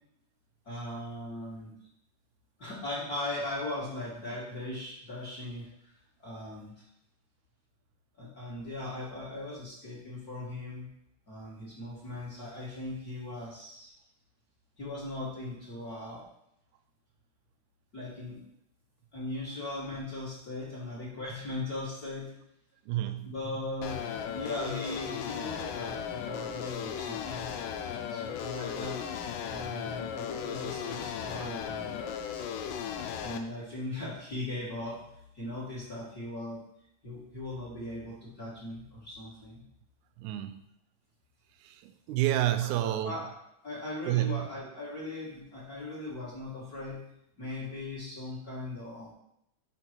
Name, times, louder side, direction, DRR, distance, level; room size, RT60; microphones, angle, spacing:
voice 1, 0.6-1.7 2.6-5.9 6.2-6.8 8.2-10.9 11.3-13.9 14.8-16.2 17.9-18.4 19.1-22.3 23.2-24.0 24.3-27.6 28.0-29.0 29.5-32.0 33.2-35.0 35.3-36.6 37.0-39.6 42.8-43.3 43.6-47.0 47.4-49.1, left 2 dB, 35° left, 1.8 m, -39 dB
voice 2, 22.9-23.3 40.2-40.7 41.6-43.2 44.1-44.5, right 14 dB, 80° right, 1.8 m, -29 dB
sound 1, 23.8-33.4, left 8 dB, 90° left, 2.2 m, -36 dB
6.0 x 4.0 x 6.0 m
omnidirectional pair, 3.7 m